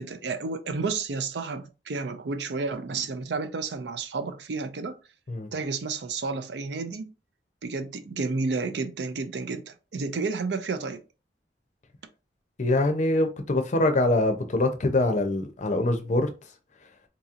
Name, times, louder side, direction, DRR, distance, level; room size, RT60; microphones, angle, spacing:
voice 1, 0.0-5.0 5.5-7.1 7.6-11.0, right 4 dB, 70° right, 0.5 m, -31 dB
voice 2, 12.6-16.3, left 2 dB, 40° left, 0.5 m, -24 dB
4.0 x 2.8 x 2.4 m
head